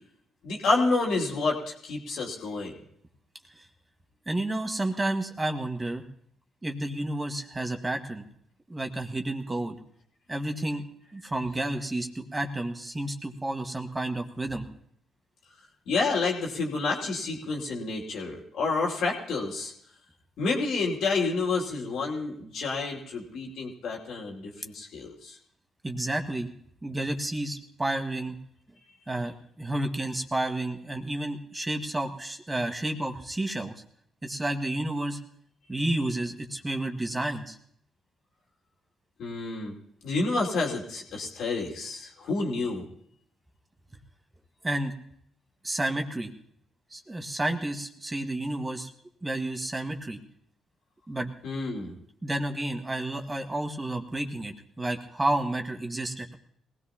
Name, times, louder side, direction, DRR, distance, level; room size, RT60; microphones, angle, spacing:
voice 1, 0.4-2.7 15.9-19.7 20.4-25.4 39.2-39.7 40.0-42.8 51.4-51.9, left 3 dB, 70° left, -1 dB, 2.7 m, -29 dB
voice 2, 4.2-6.0 6.6-8.3 8.7-9.8 10.3-10.8 11.1-14.6 25.8-26.5 26.8-28.4 29.1-33.7 34.2-35.2 35.7-37.6 44.6-44.9 45.6-46.3 46.9-48.9 49.2-50.2 51.1-51.3 52.2-56.3, right 1 dB, 20° right, 4 dB, 1.7 m, -31 dB
21.5 x 17.0 x 2.9 m, 0.68 s
hypercardioid pair, 50°, 0 cm